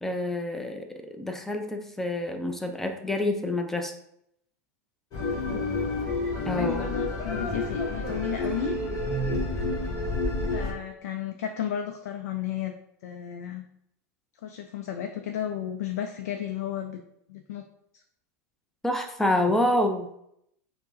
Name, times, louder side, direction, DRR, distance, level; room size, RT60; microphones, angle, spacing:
voice 1, 0.0-4.0 6.5-6.9 18.8-20.1, left 1 dB, 5° left, 5 dB, 0.5 m, -27 dB
sound 1, 5.1-10.7, left 2 dB, 45° left, 0.9 m, -29 dB
voice 2, 5.3-5.7 6.5-8.7 10.5-12.7 13.0-13.7 14.4-17.0 17.3-17.6, left 9 dB, 75° left, 5 dB, 0.4 m, -33 dB
4.3 x 2.1 x 2.6 m, 0.74 s
hypercardioid pair, 100°, 9 cm